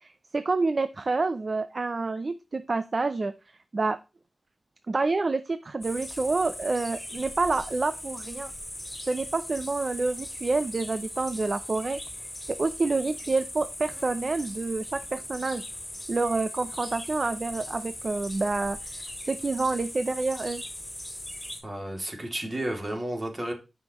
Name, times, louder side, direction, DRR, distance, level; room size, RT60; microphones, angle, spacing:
voice 1, 0.0-4.0 4.9-8.5 9.0-15.7 16.1-20.6 22.0-22.1, right 3 dB, 50° right, 11 dB, 0.6 m, -28 dB
sound 1, 5.8-21.6, left 1 dB, 10° left, 5.8 m, -39 dB
voice 2, 21.6-23.5, right 1 dB, 35° right, 2 dB, 2.6 m, -32 dB
15.0 x 5.8 x 3.0 m, 0.29 s
wide cardioid pair, 90°, 0 cm